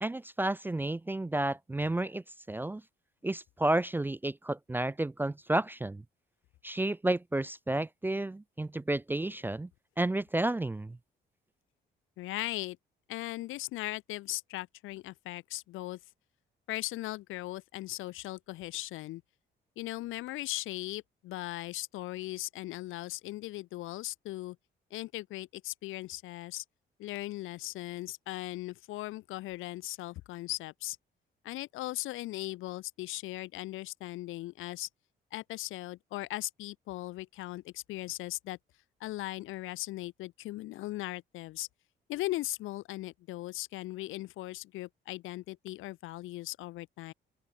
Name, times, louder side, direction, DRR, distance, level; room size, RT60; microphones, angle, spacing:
voice 1, 0.0-2.8 3.2-6.0 6.6-9.7 10.0-11.0, right 1 dB, 10° right, 0.3 m, -31 dB
voice 2, 12.2-12.8 13.1-16.0 16.7-19.2 19.8-24.6 24.9-26.6 27.0-31.0 31.4-34.9 35.3-38.6 39.0-41.7 42.1-47.1, left 17 dB, 90° left, 0.8 m, -38 dB
open air
cardioid pair, 90°, 20 cm